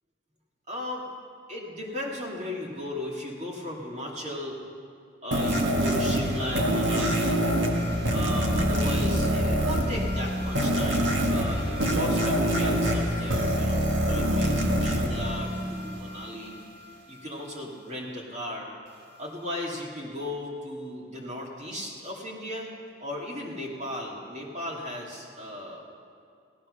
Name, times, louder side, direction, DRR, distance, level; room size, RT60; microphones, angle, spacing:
voice 1, 0.7-1.1 1.5-4.6 5.2-7.4 8.1-16.6 17.1-18.7 19.2-25.8, left 1 dB, 40° right, -3 dB, 2.6 m, -36 dB
sound 1, 5.3-16.1, equal, 85° right, 1.9 m, -25 dB
sound 2, 7.2-13.0, equal, 30° left, 1.2 m, -37 dB
16.5 x 12.0 x 6.6 m, 2.3 s
head